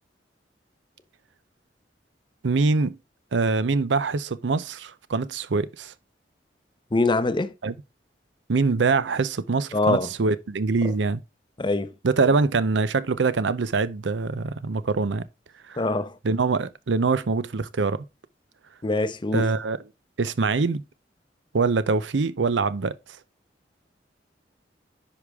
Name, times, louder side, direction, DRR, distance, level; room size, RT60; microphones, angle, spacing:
voice 1, 2.4-3.0 3.3-5.9 7.6-7.7 8.5-11.2 12.0-15.3 15.7-15.8 16.2-18.0 19.3-19.8 20.2-20.8 21.5-22.9, right 4 dB, 90° right, 0.6 m, -24 dB
voice 2, 6.9-7.5 9.7-10.1 11.6-11.9 15.8-16.1 18.8-19.5, left 2 dB, 25° left, 0.7 m, -23 dB
10.0 x 4.9 x 3.5 m
head